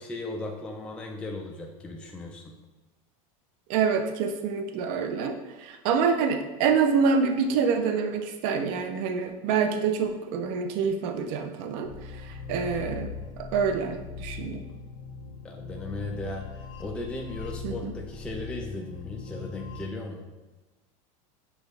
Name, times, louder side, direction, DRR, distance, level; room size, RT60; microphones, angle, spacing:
voice 1, 0.0-2.6 15.4-20.2, left 2 dB, 5° left, 1 dB, 0.3 m, -37 dB
voice 2, 3.7-14.6 17.6-17.9, right 5 dB, 60° right, 6 dB, 0.5 m, -27 dB
sound 1, 11.8-19.8, left 4 dB, 65° left, 0.7 m, -40 dB
6.1 x 2.4 x 3.3 m, 1.2 s
supercardioid pair, 130°, 18 cm